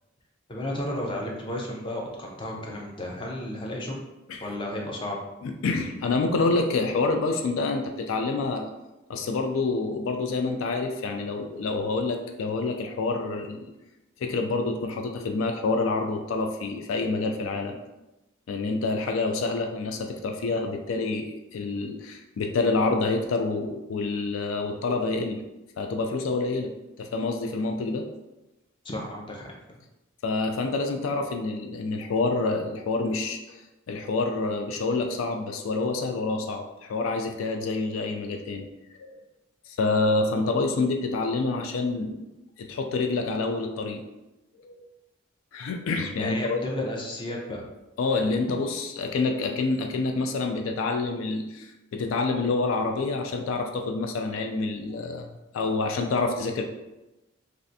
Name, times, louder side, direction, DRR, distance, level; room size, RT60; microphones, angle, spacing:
voice 1, 0.5-4.0 4.4-5.2 28.8-29.8 46.2-47.6, left 1 dB, 25° left, -1 dB, 0.5 m, -33 dB
voice 2, 5.4-8.7 9.1-13.6 14.2-17.8 18.5-25.4 25.8-26.7 27.0-28.1 30.2-33.6 33.9-38.7 39.0-39.2 39.7-42.2 42.6-44.0 44.6-44.9 45.5-46.6 48.0-55.3 55.5-56.6, left 3 dB, 85° left, 4 dB, 0.3 m, -27 dB
3.2 x 2.5 x 2.6 m, 0.99 s
head